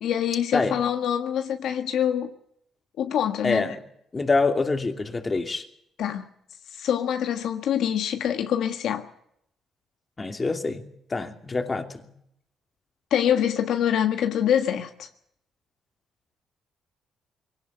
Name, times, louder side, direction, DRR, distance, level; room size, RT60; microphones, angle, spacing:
voice 1, 0.0-2.3 3.0-3.7 6.0-6.3 6.7-9.1 13.1-15.1, left 9 dB, 75° left, 1.4 m, -25 dB
voice 2, 3.4-3.8 4.1-5.6 10.2-12.1, left 3 dB, 25° left, 2.8 m, -26 dB
22.0 x 18.0 x 8.3 m
cardioid pair, 90°, 0 cm